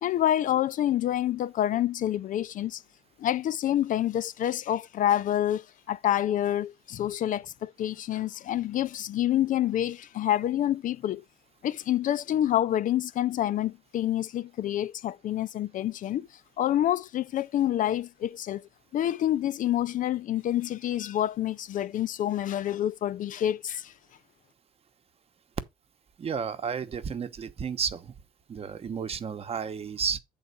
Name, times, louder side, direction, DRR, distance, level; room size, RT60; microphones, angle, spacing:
voice 1, 0.0-2.8 3.2-11.2 11.6-16.3 16.6-23.9, left 12 dB, 50° left, 0.4 m, -27 dB
voice 2, 26.2-28.1 28.5-30.2, right 6 dB, 35° right, 0.9 m, -32 dB
8.0 x 3.9 x 5.3 m
cardioid pair, 110°, 17 cm